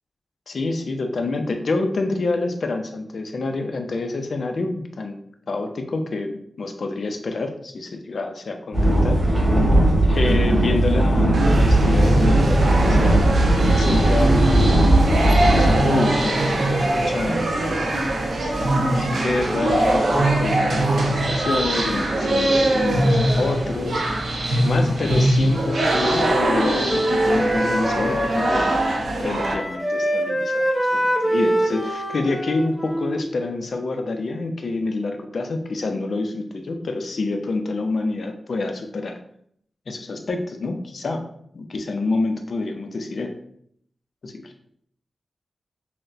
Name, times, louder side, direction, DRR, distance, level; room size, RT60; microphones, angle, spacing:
voice 1, 0.5-5.2 5.5-9.4 10.0-15.0 15.3-16.6 16.9-17.5 18.6-39.2 39.9-41.3 41.5-43.3 44.2-44.5, left 3 dB, 55° left, 5 dB, 0.5 m, -27 dB
sound 1, 8.7-15.8, right 1 dB, 30° right, 1.3 m, -17 dB
sound 2, 11.3-29.5, right 1 dB, 75° right, 0.7 m, -22 dB
Wind instrument woodwind instrument, 25.5-29.1 29.4-33.3, right 1 dB, ahead, 0.5 m, -25 dB
5.7 x 2.1 x 2.6 m, 0.68 s
wide cardioid pair, 165°, 0 cm